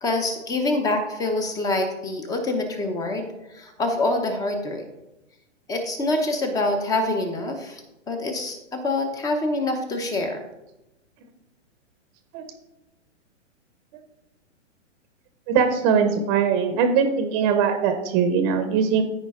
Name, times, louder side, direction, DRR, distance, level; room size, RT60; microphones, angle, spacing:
voice 1, 0.0-4.8 5.7-7.8 8.1-10.4, left 2 dB, 10° left, 5 dB, 0.8 m, -26 dB
voice 2, 15.5-19.0, right 6 dB, 25° right, 7 dB, 0.8 m, -21 dB
13.5 x 5.1 x 3.7 m, 0.95 s
hypercardioid pair, 150°, 37 cm